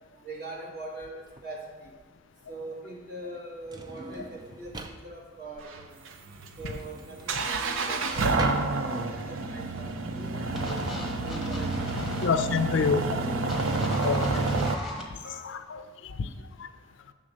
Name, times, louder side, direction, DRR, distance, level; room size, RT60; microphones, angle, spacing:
voice 1, 0.1-1.9 2.5-6.0 6.6-10.8 11.2-12.0 12.3-12.5 15.2-15.5, right 2 dB, 50° right, -3 dB, 1.9 m, -42 dB
Drawer open or close, 1.3-10.9, right 1 dB, 20° right, 0.4 m, -43 dB
sound 1, 5.6-14.7, right 3 dB, 85° right, 0.6 m, -29 dB
sound 2, 10.5-12.3 13.5-15.0, left 1 dB, ahead, 1.1 m, -35 dB
voice 2, 12.2-13.2 14.0-14.7 15.7-16.3 16.6-16.7, left 5 dB, 70° left, 10 dB, 0.4 m, -27 dB
7.3 x 3.7 x 6.4 m, 1.3 s
head